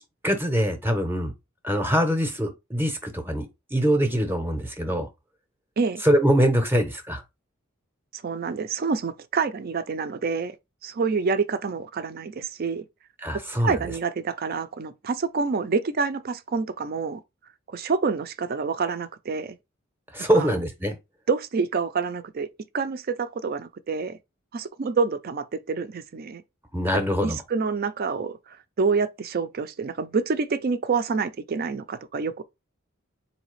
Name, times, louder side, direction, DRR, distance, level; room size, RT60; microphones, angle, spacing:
voice 1, 0.2-1.3 1.6-5.1 6.0-7.2 13.2-13.9 20.1-21.0 26.7-27.4, equal, 10° right, 0.7 m, -23 dB
voice 2, 8.1-10.6 10.8-12.9 13.6-17.2 17.7-19.6 20.3-20.5 21.3-22.5 22.7-24.2 24.5-26.4 26.9-28.4 28.8-32.4, right 5 dB, 45° right, 0.4 m, -27 dB
4.0 x 2.7 x 3.1 m
head